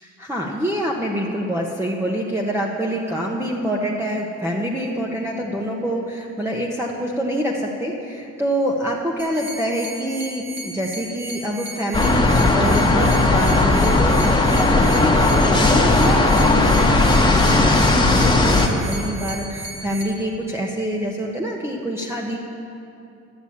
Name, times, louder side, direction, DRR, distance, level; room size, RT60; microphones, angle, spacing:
voice 1, 0.0-22.4, equal, 10° right, -2 dB, 1.1 m, -26 dB
sound 1, 9.2-20.0, right 1 dB, 55° right, 2.2 m, -35 dB
sound 2, 11.9-18.7, left 2 dB, 15° left, 1.4 m, -16 dB
12.0 x 7.1 x 8.6 m, 2.7 s
cardioid pair, 90°, 30 cm